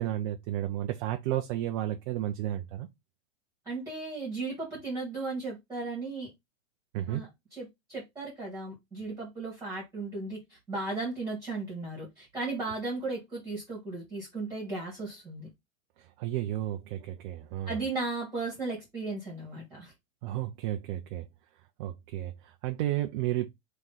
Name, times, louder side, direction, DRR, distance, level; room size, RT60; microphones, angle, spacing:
voice 1, 0.0-2.9 6.9-7.2 16.0-17.8 20.2-21.3 21.8-23.5, right 13 dB, 40° right, 0.6 m, -32 dB
voice 2, 3.7-6.3 7.1-15.5 17.7-19.9, right 3 dB, 10° right, 1.9 m, -36 dB
3.6 x 3.3 x 4.0 m
hypercardioid pair, 135°, 40 cm